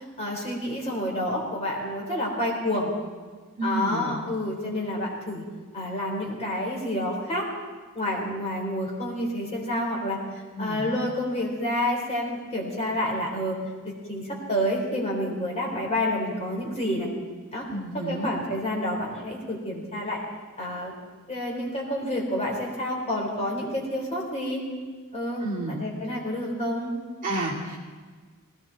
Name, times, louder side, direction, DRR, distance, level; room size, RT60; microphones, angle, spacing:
voice 1, 0.2-2.9 3.6-5.4 5.7-7.5 7.9-10.2 10.6-13.6 13.8-17.1 17.5-17.6 17.9-20.2 20.6-20.9 21.3-24.6 25.1-26.9, left 1 dB, 30° left, -2 dB, 3.9 m, -29 dB
voice 2, 3.6-4.1 10.5-10.8 17.7-18.3 25.4-25.8 27.2-27.8, right 2 dB, 40° right, -4 dB, 2.7 m, -30 dB
19.0 x 17.5 x 4.1 m, 1.5 s
head